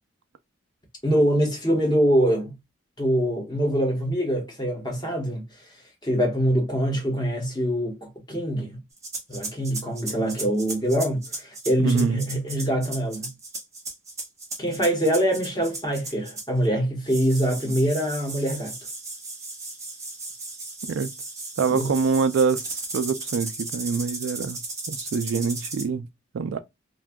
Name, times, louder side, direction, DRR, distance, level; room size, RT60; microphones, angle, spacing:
voice 1, 1.0-2.5 3.0-5.4 6.0-8.8 9.3-13.3 14.6-18.7 21.7-21.9, equal, 20° left, 1.0 m, -24 dB
sound 1, 9.0-16.6 17.1-25.9, right 2 dB, 15° right, 0.9 m, -36 dB
voice 2, 11.8-12.2 20.9-21.1 21.6-24.6 24.9-26.0 26.3-26.6, right 5 dB, 70° right, 0.3 m, -25 dB
2.6 x 2.3 x 3.4 m
head